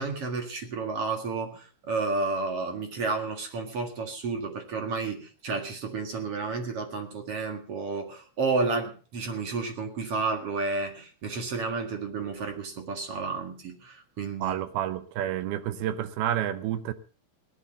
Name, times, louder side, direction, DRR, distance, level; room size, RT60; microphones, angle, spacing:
voice 1, 0.0-14.6, right 4 dB, 45° right, 5 dB, 2.2 m, -31 dB
voice 2, 14.4-16.9, right 11 dB, 80° right, 12 dB, 2.8 m, -29 dB
18.0 x 10.5 x 5.3 m, 0.38 s
omnidirectional pair, 4.6 m